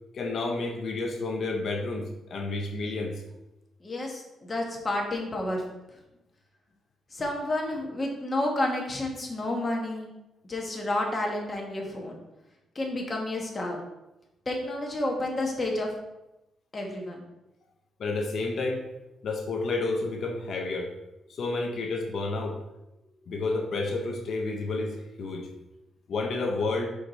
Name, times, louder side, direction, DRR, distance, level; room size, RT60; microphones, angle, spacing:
voice 1, 0.1-3.2 18.0-18.9 19.2-20.9 21.3-22.6 23.3-25.5 26.1-26.9, left 3 dB, 60° left, 3 dB, 0.8 m, -30 dB
voice 2, 3.8-5.6 7.1-10.1 10.4-12.2 12.7-13.8 14.4-15.9 16.7-17.2, left 1 dB, 30° left, 0 dB, 1.5 m, -30 dB
4.9 x 4.8 x 4.1 m, 0.94 s
cardioid pair, 95°, 0 cm